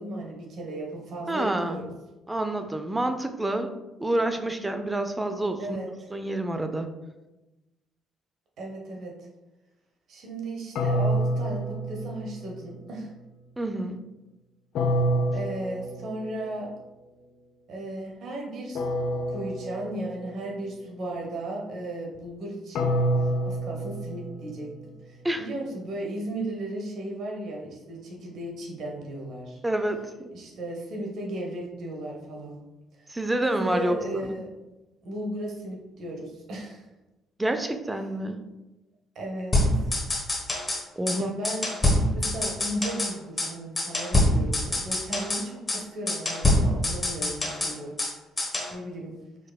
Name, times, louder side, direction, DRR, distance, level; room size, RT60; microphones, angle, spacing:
voice 1, 0.0-1.9 5.6-5.9 8.6-9.3 10.1-13.1 15.3-16.7 17.7-18.8 19.3-22.9 23.4-24.7 25.1-29.6 30.3-32.6 33.0-33.1 33.4-34.5 35.0-36.8 39.1-39.9 41.1-48.0 48.7-49.2, right 1 dB, 55° right, 0 dB, 1.0 m, -35 dB
voice 2, 1.3-1.8 2.3-3.7 4.0-5.8 6.1-6.9 13.6-14.0 25.2-25.5 29.6-30.3 33.1-34.3 37.4-38.4 41.0-41.3, right 1 dB, 15° right, 7 dB, 0.5 m, -28 dB
sound 1, 10.8-12.8 14.8-16.6 18.8-20.6 22.8-25.0, right 1 dB, 60° left, 0.4 m, -28 dB
sound 2, 39.5-40.8 41.1-41.2 41.4-43.1 43.4-43.5 43.8-45.4 45.7-45.8 46.1-48.1 48.4-48.7, left 1 dB, 25° left, 1.1 m, -25 dB
4.8 x 4.1 x 2.3 m, 1.0 s
figure-of-eight pair, 45°, 0 cm